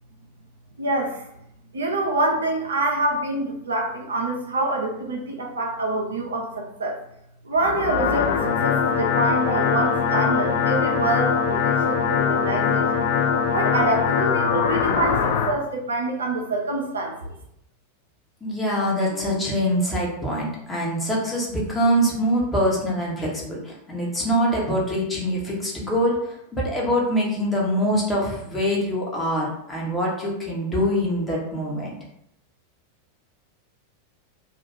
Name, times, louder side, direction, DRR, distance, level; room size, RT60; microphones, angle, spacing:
voice 1, 0.8-1.2 1.7-7.0 7.4-13.0 13.5-17.3, right 2 dB, 70° right, 1 dB, 0.5 m, -26 dB
sound 1, 7.6-15.5, left 7 dB, 55° left, 0.3 m, -22 dB
voice 2, 18.4-31.9, equal, 10° left, -4 dB, 0.9 m, -24 dB
2.4 x 2.2 x 3.4 m, 0.78 s
figure-of-eight pair, 90°, 0 cm